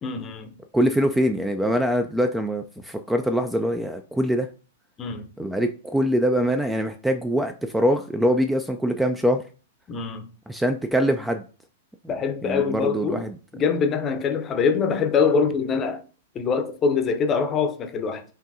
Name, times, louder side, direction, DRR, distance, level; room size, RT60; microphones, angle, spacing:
voice 1, 0.0-0.5 5.0-5.3 9.9-10.3 12.1-13.2 13.5-16.0 16.3-18.2, left 5 dB, 25° left, 0.6 m, -24 dB
voice 2, 0.7-4.5 5.4-9.4 10.5-11.4 12.4-13.4, equal, 5° right, 0.3 m, -23 dB
5.1 x 2.6 x 2.6 m
figure-of-eight pair, 100°, 0 cm